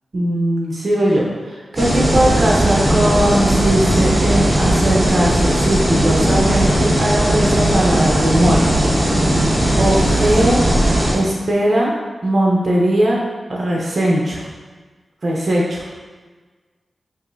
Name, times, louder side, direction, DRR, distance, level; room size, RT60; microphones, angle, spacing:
voice 1, 0.1-8.6 9.2-9.4 9.8-10.6 11.1-11.9 12.2-13.2 13.5-14.4 15.2-15.8, right 1 dB, 55° right, -3 dB, 0.8 m, -19 dB
sound 1, 1.8-11.1, right 1 dB, 20° right, 1.1 m, -17 dB
5.1 x 2.6 x 2.6 m, 1.4 s
cardioid pair, 60°, 0 cm